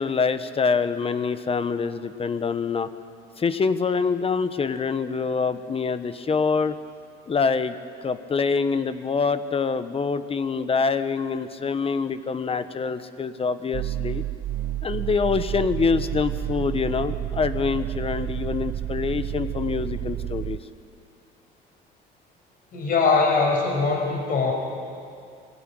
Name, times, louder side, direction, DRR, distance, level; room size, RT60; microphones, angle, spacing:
voice 1, 0.0-2.9 3.4-6.7 7.3-7.7 8.0-14.2 14.8-20.6, left 5 dB, 30° left, 12 dB, 1.2 m, -25 dB
sound 1, 13.7-20.6, right 12 dB, 50° right, 0.6 m, -30 dB
voice 2, 22.7-24.5, left 4 dB, 50° left, 0 dB, 6.0 m, -21 dB
21.0 x 15.5 x 9.9 m, 2.3 s
supercardioid pair, 90°, 19 cm